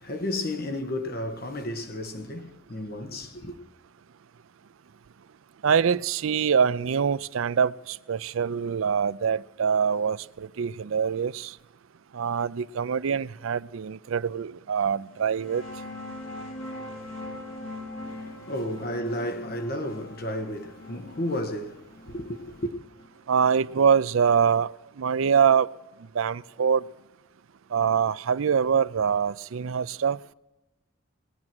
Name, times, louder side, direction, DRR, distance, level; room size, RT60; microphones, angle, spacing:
voice 1, 0.0-3.6 18.0-22.7, left 1 dB, 50° left, 1.4 m, -33 dB
voice 2, 5.6-11.5 12.1-15.6 23.3-25.7 26.1-26.8 27.7-30.2, right 7 dB, 85° right, 0.4 m, -24 dB
sound 1, 15.1-24.4, left 1 dB, 75° left, 2.2 m, -42 dB
19.0 x 9.8 x 6.1 m
head